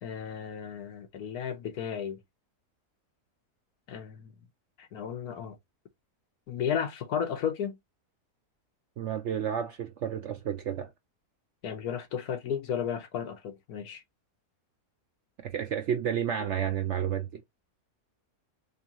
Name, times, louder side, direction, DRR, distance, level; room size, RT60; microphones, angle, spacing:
voice 1, 0.0-2.2 3.9-4.3 4.8-5.6 6.5-7.8 11.6-14.0, left 8 dB, 70° left, 1.4 m, -34 dB
voice 2, 9.0-10.9 15.4-17.4, right 9 dB, 65° right, 0.7 m, -31 dB
3.8 x 3.6 x 2.9 m
omnidirectional pair, 1.7 m